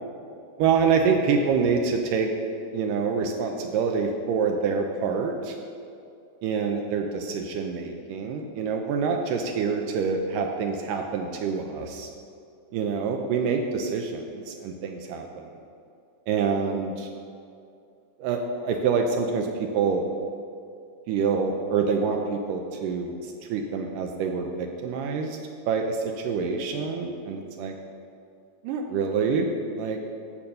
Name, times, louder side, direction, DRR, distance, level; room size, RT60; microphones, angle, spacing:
voice 1, 0.6-2.3 2.7-5.5 6.4-12.1 12.7-15.5 16.3-17.1 18.2-20.0 21.1-23.1 23.5-25.4 25.7-27.8 28.6-29.5 29.8-30.0, right 5 dB, 80° right, 3 dB, 2.2 m, -26 dB
8.6 x 6.9 x 6.5 m, 2.4 s
omnidirectional pair, 4.0 m